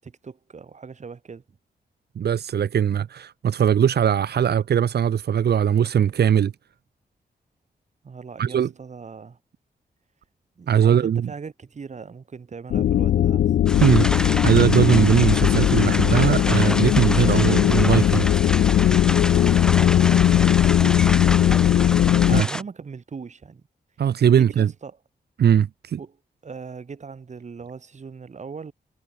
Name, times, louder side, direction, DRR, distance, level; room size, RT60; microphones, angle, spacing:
voice 1, 0.0-1.4 8.0-9.4 10.6-13.6 19.3-21.6 22.3-23.6 24.3-25.0 26.0-26.2 26.4-28.7, right 5 dB, 45° right, 7.1 m, -40 dB
voice 2, 2.1-6.5 8.4-8.7 10.7-11.3 13.8-18.3 22.3-22.5 24.0-24.7 25.4-26.0, right 9 dB, 90° right, 1.6 m, -20 dB
sound 1, 12.7-22.4, left 11 dB, 75° left, 0.4 m, -18 dB
sound 2, 13.7-22.6, left 1 dB, 5° left, 0.9 m, -30 dB
wide cardioid pair, 140°, 16 cm